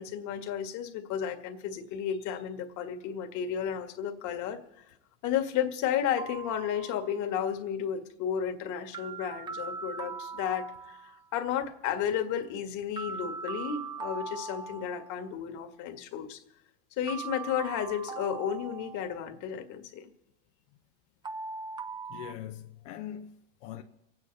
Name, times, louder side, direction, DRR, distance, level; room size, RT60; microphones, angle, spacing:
voice 1, 0.0-4.6 5.2-16.4 17.0-20.1, left 9 dB, 55° left, 1.8 m, -33 dB
Small looping bell sound, 6.2-7.3 8.9-11.3 13.0-15.3 17.1-19.4 21.2-22.3, right 5 dB, 15° right, 0.4 m, -40 dB
voice 2, 22.1-23.8, left 11 dB, 90° left, 0.9 m, -42 dB
24.5 x 9.1 x 4.1 m
supercardioid pair, 120°, 36 cm